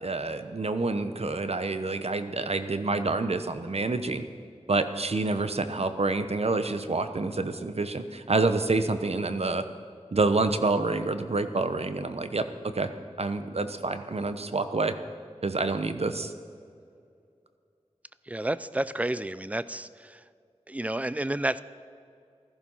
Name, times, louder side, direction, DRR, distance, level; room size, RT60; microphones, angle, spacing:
voice 1, 0.0-4.2 4.7-9.6 10.1-12.4 12.7-12.9 13.2-14.9 15.4-16.3, right 3 dB, 65° right, 10 dB, 1.0 m, -27 dB
voice 2, 18.3-20.2 20.7-21.6, right 1 dB, 10° right, 16 dB, 0.5 m, -30 dB
15.5 x 14.0 x 5.7 m, 2.4 s
wide cardioid pair, 65°, 11 cm